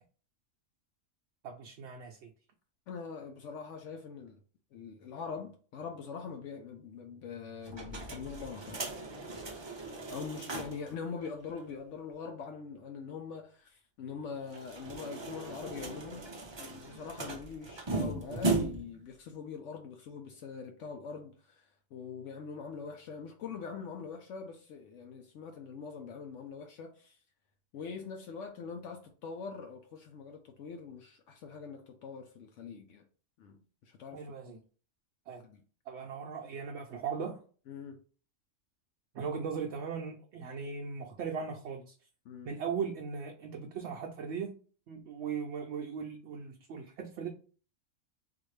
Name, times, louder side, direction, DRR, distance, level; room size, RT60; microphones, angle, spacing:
voice 1, 1.4-2.3 34.1-34.6 35.3-35.4 35.9-37.4 39.1-41.9 42.4-44.6 44.9-47.3, right 6 dB, 65° right, 0.8 m, -38 dB
voice 2, 2.9-4.4 4.7-8.9 10.1-16.2 16.6-27.2 27.7-33.1 33.4-34.5 35.4-35.6 37.7-38.0 42.3-42.5, left 5 dB, 70° left, 0.9 m, -43 dB
sound 1, 7.7-10.9 11.2-11.3 11.6-11.7 14.4-19.0, right 2 dB, 35° right, 0.4 m, -37 dB
3.8 x 2.5 x 3.1 m
omnidirectional pair, 1.3 m